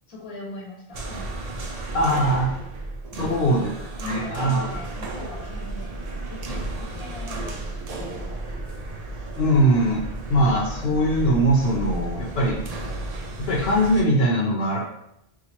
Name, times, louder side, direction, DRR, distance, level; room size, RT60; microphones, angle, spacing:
voice 1, 0.1-1.3 2.1-2.4 3.1-3.6 4.0-8.4, left 1 dB, 35° left, -4 dB, 1.0 m, -40 dB
sound 1, 0.9-14.0, right 2 dB, 50° right, 0.5 m, -33 dB
voice 2, 1.9-2.5 3.2-3.7 4.0-4.7 9.4-10.0 10.3-12.6 13.4-14.8, right 1 dB, 75° left, -1 dB, 0.9 m, -21 dB
2.9 x 2.4 x 4.2 m, 0.80 s
omnidirectional pair, 1.1 m